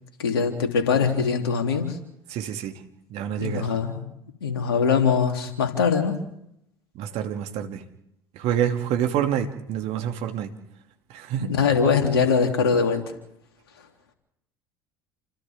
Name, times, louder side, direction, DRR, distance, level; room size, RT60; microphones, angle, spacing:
voice 1, 0.2-2.0 3.4-4.0 4.4-6.2 11.4-13.0, left 5 dB, 80° left, 4 dB, 3.3 m, -22 dB
voice 2, 2.3-2.7 3.1-3.7 6.9-7.8 8.3-10.5 11.1-11.5, right 9 dB, 55° right, 4 dB, 2.7 m, -27 dB
29.0 x 25.5 x 3.7 m, 0.80 s
figure-of-eight pair, 65°, 13 cm